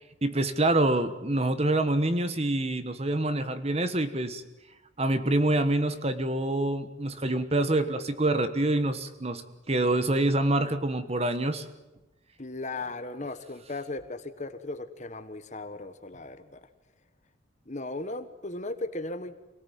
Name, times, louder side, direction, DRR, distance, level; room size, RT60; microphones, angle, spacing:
voice 1, 0.2-4.4 5.0-11.6, right 2 dB, 30° right, 10 dB, 1.3 m, -26 dB
voice 2, 12.4-16.6 17.7-19.5, left 2 dB, 35° left, 10 dB, 1.3 m, -37 dB
25.5 x 18.0 x 9.3 m, 1.0 s
head